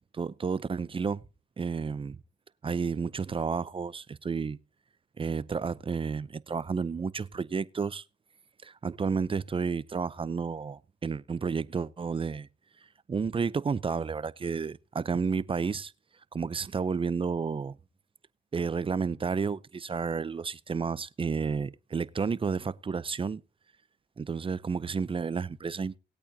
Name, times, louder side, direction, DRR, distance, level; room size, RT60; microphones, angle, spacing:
voice 1, 0.1-1.2 1.6-2.2 2.6-4.6 5.2-8.0 8.6-12.5 13.1-15.9 16.3-17.8 18.5-23.4 24.2-26.0, right 5 dB, 25° right, 0.6 m, -31 dB
20.0 x 8.7 x 2.8 m
cardioid pair, 90°, 20 cm